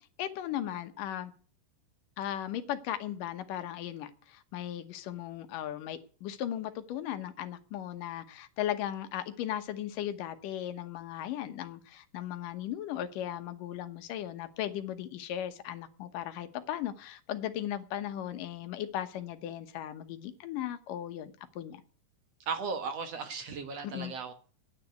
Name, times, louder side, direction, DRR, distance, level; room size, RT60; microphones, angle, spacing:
voice 1, 0.2-1.3 2.2-21.8 23.8-24.1, left 11 dB, 80° left, 10 dB, 2.6 m, -37 dB
voice 2, 22.5-24.3, right 5 dB, 60° right, 8 dB, 2.1 m, -36 dB
10.0 x 9.6 x 9.3 m, 0.42 s
omnidirectional pair, 3.8 m